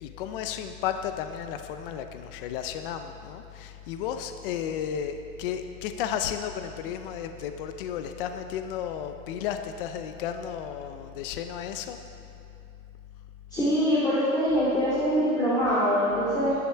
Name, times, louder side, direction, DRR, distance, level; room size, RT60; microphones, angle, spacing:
voice 1, 0.0-12.0, left 9 dB, 40° left, 7 dB, 0.6 m, -33 dB
voice 2, 13.5-16.5, equal, 10° left, -9 dB, 2.6 m, -24 dB
19.0 x 10.5 x 4.6 m, 2.7 s
supercardioid pair, 160°, 43 cm